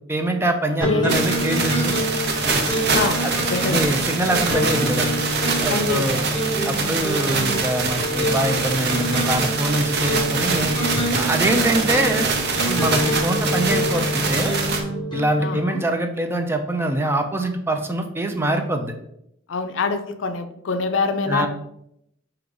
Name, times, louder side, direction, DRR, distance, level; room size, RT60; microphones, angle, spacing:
voice 1, 0.1-1.9 2.5-2.6 3.2-3.3 3.7-5.1 5.5-6.2 6.6-10.7 11.1-12.3 12.6-14.5 15.1-18.9 21.3-21.5, right 1 dB, 10° right, 5 dB, 0.4 m, -24 dB
voice 2, 0.8-1.3 2.8-3.9 5.7-6.3 11.4-11.8 15.4-15.8 19.5-21.5, left 4 dB, 70° left, 8 dB, 0.5 m, -25 dB
sound 1, 0.8-15.6, equal, 25° left, 1.6 m, -26 dB
sound 2, 1.1-14.8, right 4 dB, 60° right, 0.7 m, -24 dB
4.9 x 2.9 x 3.7 m, 0.75 s
head